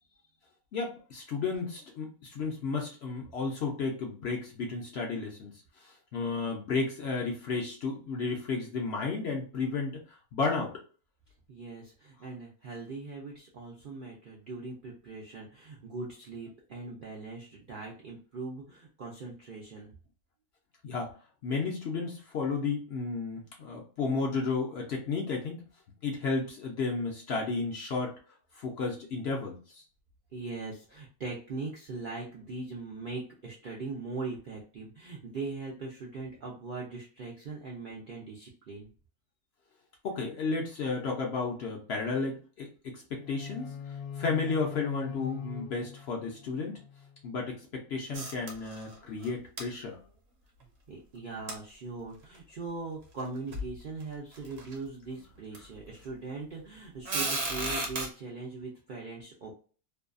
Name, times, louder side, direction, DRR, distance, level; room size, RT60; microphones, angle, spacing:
voice 1, 0.7-5.5 5.8-10.7 20.8-21.1 21.4-25.6 26.0-28.1 28.5-29.8 40.0-43.7 44.2-46.8 47.2-50.0, left 4 dB, 60° left, 0 dB, 0.7 m, -33 dB
voice 2, 11.5-19.9 30.3-38.9 50.9-59.5, right 3 dB, 70° right, -2 dB, 0.4 m, -40 dB
sound 1, 43.2-47.2, left 7 dB, 80° left, 1.1 m, -42 dB
sound 2, 48.1-48.9 49.2-49.3 49.6-49.7 51.5-51.6 52.3-52.4 53.2-53.3 53.5-53.7 54.3-54.7 55.5-55.6 57.0-58.1, right 2 dB, 50° right, 0.9 m, -33 dB
2.6 x 2.3 x 2.4 m, 0.40 s
omnidirectional pair, 1.6 m